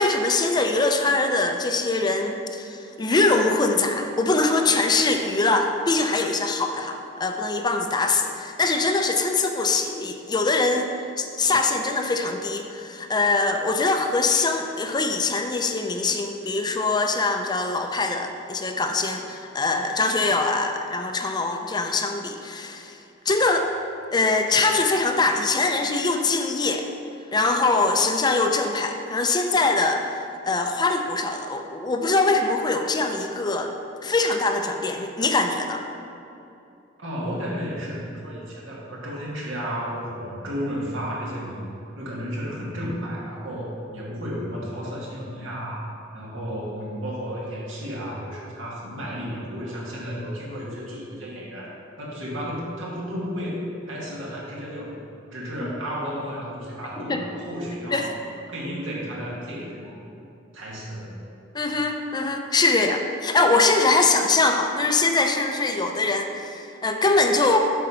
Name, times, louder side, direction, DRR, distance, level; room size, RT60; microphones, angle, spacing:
voice 1, 0.0-10.9 11.2-23.0 23.3-23.7 24.1-26.9 27.3-30.1 30.4-35.8 55.6-55.7 57.1-57.2 57.9-58.1 61.5-67.6, left 3 dB, 20° left, 4 dB, 0.4 m, -23 dB
voice 2, 37.0-41.6 42.0-54.9 55.3-58.1 58.5-60.0 60.5-61.2, equal, 85° right, -4 dB, 1.8 m, -33 dB
7.9 x 4.2 x 5.6 m, 2.7 s
head